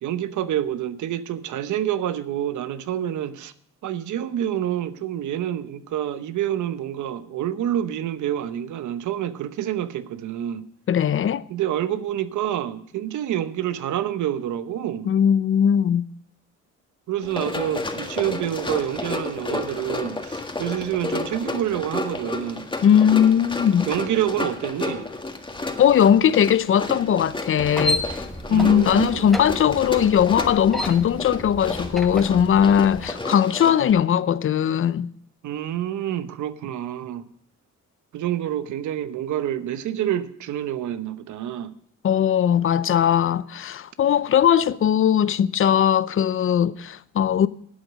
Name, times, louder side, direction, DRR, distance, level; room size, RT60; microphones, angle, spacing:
voice 1, 0.0-3.5 3.8-10.7 11.5-15.1 17.1-22.6 23.9-25.1 28.5-29.3 35.4-37.3 38.1-41.7, right 11 dB, 75° right, 0.9 m, -27 dB
voice 2, 10.9-11.4 15.0-16.1 22.8-23.9 25.8-28.2 28.5-35.1 42.0-47.5, left 9 dB, 45° left, 0.6 m, -19 dB
Run, 17.2-33.9, left 3 dB, 15° left, 1.7 m, -32 dB
sound 1, 27.6-33.1, left 1 dB, ahead, 1.2 m, -32 dB
11.5 x 8.1 x 6.3 m
cardioid pair, 90°, 30 cm